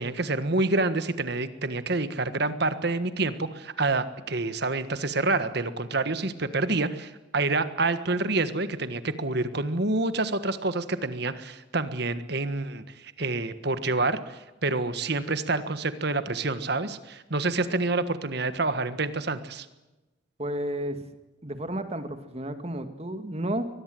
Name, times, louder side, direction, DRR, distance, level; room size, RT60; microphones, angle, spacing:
voice 1, 0.0-19.6, right 3 dB, 55° right, 12 dB, 1.5 m, -28 dB
voice 2, 20.4-21.0 21.4-23.7, right 1 dB, 30° right, 9 dB, 2.0 m, -32 dB
23.0 x 20.0 x 7.8 m, 1.0 s
head